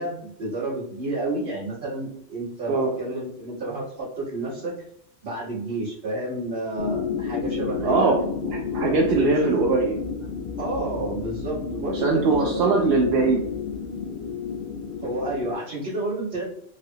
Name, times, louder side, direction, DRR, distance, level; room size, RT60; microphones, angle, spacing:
voice 1, 0.0-2.7 3.0-4.7 5.2-8.1 9.1-9.5 10.6-12.8 15.0-16.4, right 2 dB, 45° right, -8 dB, 1.5 m, -30 dB
sound 1, 6.8-15.5, left 6 dB, 60° left, 0.6 m, -31 dB
voice 2, 7.8-8.1 8.4-10.0 11.9-13.4, right 4 dB, 65° right, -1 dB, 0.7 m, -21 dB
3.3 x 2.4 x 2.7 m, 0.67 s
omnidirectional pair, 1.2 m